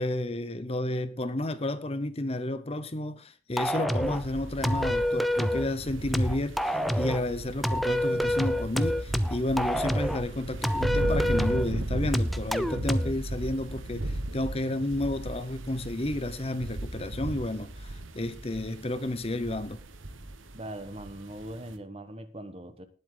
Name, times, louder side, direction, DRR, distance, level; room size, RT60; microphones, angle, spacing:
voice 1, 0.0-19.8, left 1 dB, 30° left, 0.8 m, -31 dB
sound 1, 3.6-4.2 4.6-5.7 6.1-7.2 7.6-10.2 10.6-11.7 12.1-13.1, equal, ahead, 0.6 m, -27 dB
sound 2, 4.0-21.7, right 1 dB, 80° right, 1.3 m, -36 dB
voice 2, 20.5-22.9, right 1 dB, 30° right, 1.3 m, -40 dB
19.0 x 8.0 x 3.9 m
head